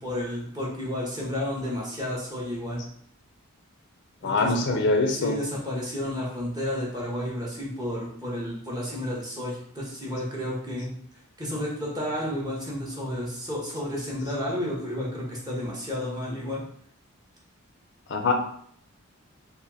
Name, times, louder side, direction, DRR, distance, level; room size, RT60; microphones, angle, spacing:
voice 1, 0.0-2.8 4.2-4.8 5.1-10.9 11.4-16.6, left 1 dB, 20° right, -5 dB, 1.0 m, -31 dB
voice 2, 4.2-5.4 18.1-18.3, left 3 dB, 50° left, 4 dB, 0.4 m, -23 dB
4.2 x 2.0 x 3.4 m, 0.64 s
head